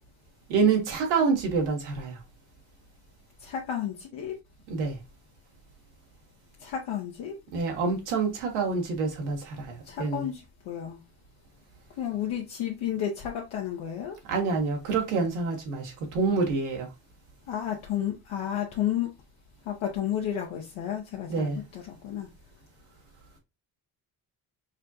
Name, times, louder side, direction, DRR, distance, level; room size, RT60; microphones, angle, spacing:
voice 1, 0.5-2.2 4.7-5.0 7.5-10.3 14.3-16.9 21.3-21.6, right 4 dB, 80° right, 1.2 m, -27 dB
voice 2, 3.4-4.4 6.6-7.4 9.9-11.0 12.0-14.2 17.5-19.1 19.7-22.3, left 10 dB, 65° left, 0.9 m, -32 dB
5.3 x 2.2 x 2.5 m
hypercardioid pair, 55°, 49 cm